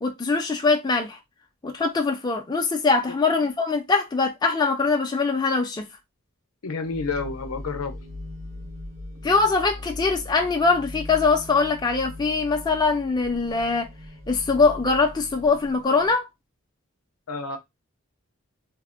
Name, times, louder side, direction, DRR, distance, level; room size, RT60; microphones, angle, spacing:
voice 1, 0.0-1.2 1.6-5.9 9.2-13.9 14.3-16.3, left 4 dB, 20° left, 0.4 m, -22 dB
voice 2, 6.6-8.0 17.3-17.6, left 4 dB, 90° left, 0.5 m, -30 dB
sound 1, 6.8-16.2, left 1 dB, 60° right, 0.7 m, -40 dB
3.4 x 2.1 x 2.2 m
head